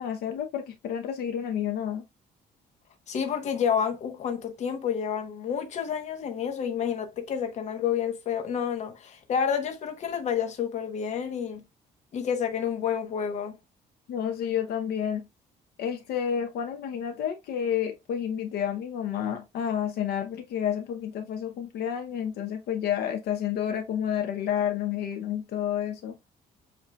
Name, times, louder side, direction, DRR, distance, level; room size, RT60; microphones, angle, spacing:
voice 1, 0.0-2.0 14.1-15.2 15.8-26.2, left 9 dB, 75° left, 0.7 m, -30 dB
voice 2, 3.1-11.6 12.1-13.6, left 8 dB, 45° left, 0.9 m, -29 dB
7.5 x 2.7 x 2.2 m
cardioid pair, 150°, 16 cm